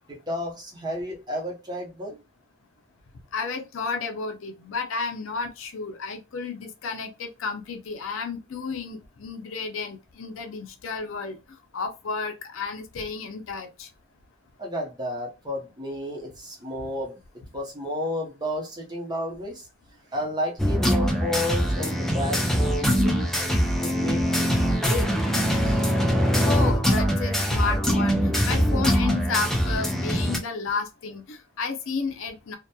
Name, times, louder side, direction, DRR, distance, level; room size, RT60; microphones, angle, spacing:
voice 1, 0.1-2.2 14.6-17.2 17.5-19.6 20.1-23.3 23.8-25.3 25.6-25.8, left 1 dB, 20° right, 0.7 m, -32 dB
voice 2, 3.3-11.4 11.7-13.9 26.4-32.6, left 4 dB, 70° left, 0.5 m, -32 dB
sound 1, 20.6-30.4, equal, ahead, 0.4 m, -23 dB
2.8 x 2.1 x 2.2 m
head